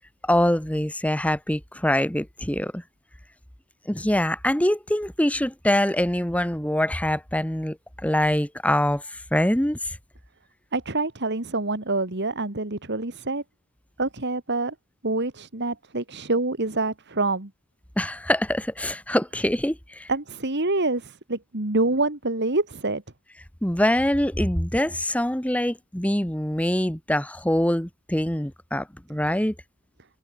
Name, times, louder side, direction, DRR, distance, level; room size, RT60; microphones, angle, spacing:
voice 1, 0.2-2.8 3.9-7.8 8.0-10.0 18.0-20.1 23.6-29.5, left 1 dB, 5° left, 1.3 m, -24 dB
voice 2, 10.7-13.4 14.0-14.7 15.0-17.5 20.1-23.0, right 2 dB, 50° right, 2.2 m, -26 dB
head